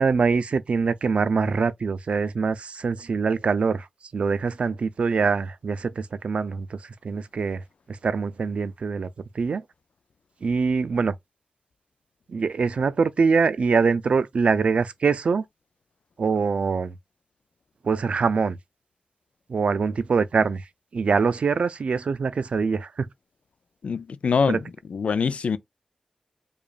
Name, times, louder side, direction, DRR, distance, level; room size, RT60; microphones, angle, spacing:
voice 1, 0.0-3.9 4.1-6.8 7.0-7.6 8.0-9.1 9.4-9.6 10.4-11.1 12.3-15.4 16.2-16.9 17.8-18.6 19.5-20.6 20.9-23.1 24.4-24.6, right 5 dB, 75° right, 0.4 m, -23 dB
voice 2, 23.8-24.6 24.9-25.6, left 5 dB, 85° left, 0.4 m, -24 dB
4.9 x 2.4 x 2.4 m
wide cardioid pair, 100°, 2 cm